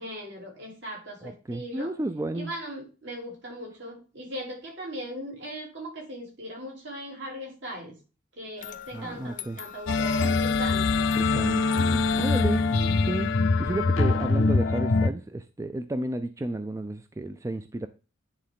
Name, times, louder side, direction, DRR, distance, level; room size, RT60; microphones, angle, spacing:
voice 1, 0.0-1.9 2.3-7.9 8.4-11.1, equal, 65° right, -1 dB, 3.3 m, -39 dB
voice 2, 1.2-2.5 8.6-9.6 11.1-12.7 13.0-13.3 13.6-17.9, right 2 dB, 15° right, 10 dB, 0.3 m, -32 dB
sound 1, 8.6-13.6, left 10 dB, 40° left, 0.6 m, -42 dB
sound 2, 9.9-15.1, left 3 dB, 85° left, 0.6 m, -23 dB
9.9 x 3.7 x 3.7 m, 0.33 s
head